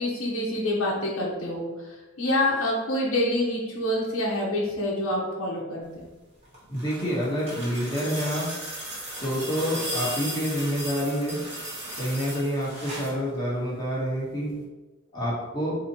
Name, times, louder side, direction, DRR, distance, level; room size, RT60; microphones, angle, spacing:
voice 1, 0.0-6.1, left 1 dB, 70° left, -3 dB, 0.9 m, -27 dB
sound 1, 6.4-13.2 14.5-14.6, right 1 dB, 30° right, 1.1 m, -36 dB
voice 2, 6.7-8.5 9.2-11.4 12.0-14.5 15.1-15.8, equal, 20° left, -7 dB, 1.2 m, -28 dB
4.2 x 2.9 x 2.9 m, 1.1 s
head